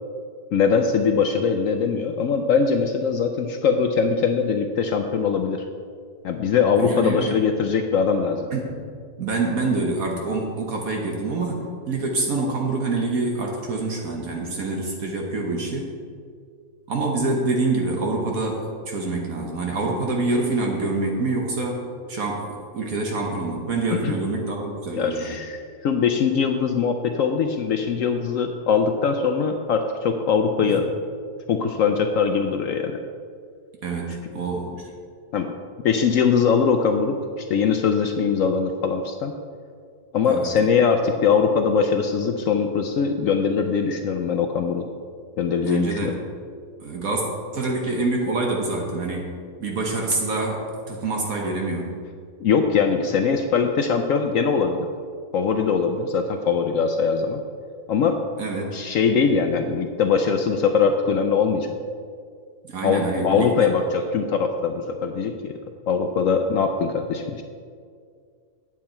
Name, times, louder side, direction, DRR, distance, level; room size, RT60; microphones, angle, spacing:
voice 1, 0.5-5.6 6.2-8.5 24.0-24.1 24.9-30.9 31.5-33.0 35.3-35.5 35.8-39.3 40.1-44.8 45.4-46.1 52.4-54.8 55.3-57.4 57.9-58.2 58.7-61.7 62.8-65.5 65.9-67.4, left 6 dB, 70° left, 5 dB, 0.8 m, -21 dB
voice 2, 6.8-7.4 8.5-8.8 9.2-15.9 16.9-25.4 30.6-30.8 33.8-34.9 40.2-40.5 45.6-46.2 46.8-47.2 47.5-49.3 49.6-51.9 58.4-58.8 62.6-63.7, right 3 dB, 60° right, 0 dB, 1.4 m, -26 dB
9.2 x 7.4 x 4.3 m, 2.2 s
omnidirectional pair, 1.8 m